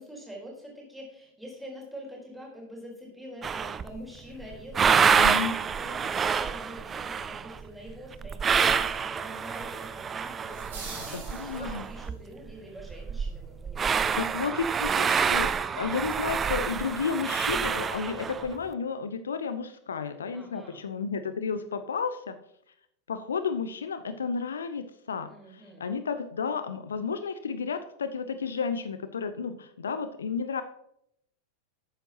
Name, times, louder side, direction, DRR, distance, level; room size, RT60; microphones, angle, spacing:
voice 1, 0.0-14.5 20.3-20.8 25.2-25.8, equal, 5° right, -3 dB, 3.9 m, -45 dB
sound 1, 3.4-4.0 4.4-12.2 12.5-12.6 12.8-18.6, right 6 dB, 20° right, 0.5 m, -27 dB
voice 2, 5.2-5.5 11.1-11.9 14.2-22.4 23.1-30.6, left 5 dB, 70° left, 11 dB, 0.6 m, -32 dB
sound 2, 10.5-12.1, right 4 dB, 55° right, 4.0 m, -43 dB
11.5 x 8.9 x 2.9 m, 0.73 s
figure-of-eight pair, 90°, 0 cm